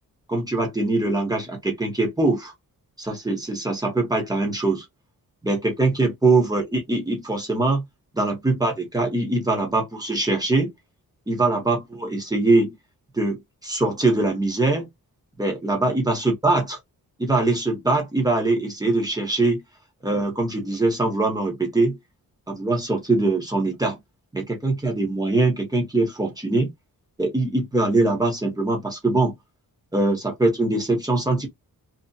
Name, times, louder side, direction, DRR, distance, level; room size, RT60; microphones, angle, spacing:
voice 1, 0.3-2.5 3.0-4.8 5.4-7.8 8.1-10.7 11.3-12.7 13.1-13.4 13.6-14.9 15.4-16.8 17.2-19.6 20.0-22.0 22.5-24.0 24.3-26.7 27.2-29.3 29.9-31.5, right 2 dB, 10° right, 0.9 m, -22 dB
2.7 x 2.3 x 2.3 m
wide cardioid pair, 165°, 37 cm